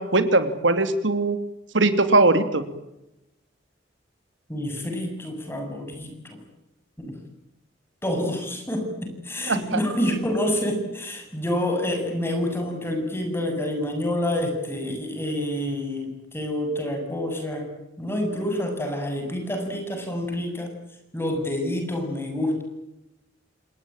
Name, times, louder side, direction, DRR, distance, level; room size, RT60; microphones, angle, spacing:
voice 1, 0.0-1.4 1.7-2.6 9.5-9.8, right 2 dB, 90° right, 10 dB, 2.9 m, -20 dB
voice 2, 4.5-6.4 7.0-7.1 8.0-17.7 18.0-20.7 21.1-22.6, left 1 dB, 15° left, 4 dB, 7.3 m, -28 dB
27.0 x 20.5 x 9.0 m, 0.90 s
head